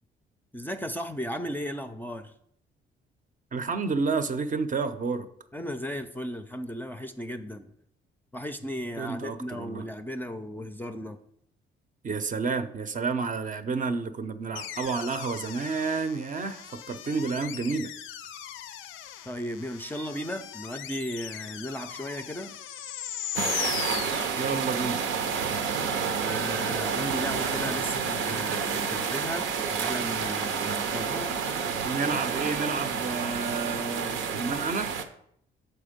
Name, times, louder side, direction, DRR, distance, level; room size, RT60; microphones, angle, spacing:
voice 1, 0.5-2.3 5.5-7.7 8.3-11.2 19.2-22.6 26.2-31.7, equal, 10° left, 0.5 m, -36 dB
voice 2, 3.5-5.3 9.0-9.9 12.0-17.9 24.3-25.0 31.8-35.0, right 4 dB, 40° right, 0.6 m, -30 dB
sound 1, 14.6-24.8, left 10 dB, 85° left, 0.5 m, -38 dB
sound 2, 23.4-35.0, right 6 dB, 85° right, 0.7 m, -29 dB
6.7 x 4.4 x 5.1 m
cardioid pair, 90°, 20 cm